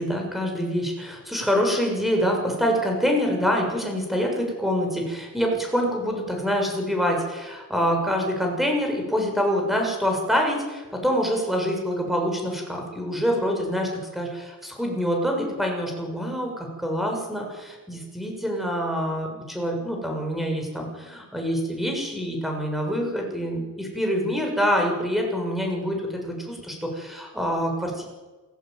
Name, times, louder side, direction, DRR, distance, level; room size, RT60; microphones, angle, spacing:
voice 1, 0.0-28.0, equal, ahead, 1 dB, 6.7 m, -26 dB
28.0 x 16.5 x 9.3 m, 1.3 s
wide cardioid pair, 160°, 33 cm